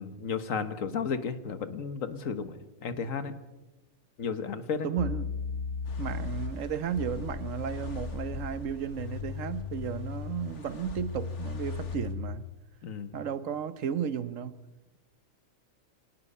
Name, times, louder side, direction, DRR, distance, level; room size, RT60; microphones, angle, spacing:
voice 1, 0.0-3.4 4.2-4.9 12.8-13.2, left 6 dB, 85° left, 11 dB, 1.6 m, -33 dB
voice 2, 4.8-5.3 6.0-12.5 13.1-14.6, right 8 dB, 80° right, 14 dB, 1.3 m, -34 dB
sound 1, 5.0-12.5, left 6 dB, 45° left, 0.8 m, -37 dB
sound 2, 5.8-12.1, left 2 dB, 65° left, 1.8 m, -46 dB
26.5 x 18.5 x 5.5 m, 1.1 s
omnidirectional pair, 1.3 m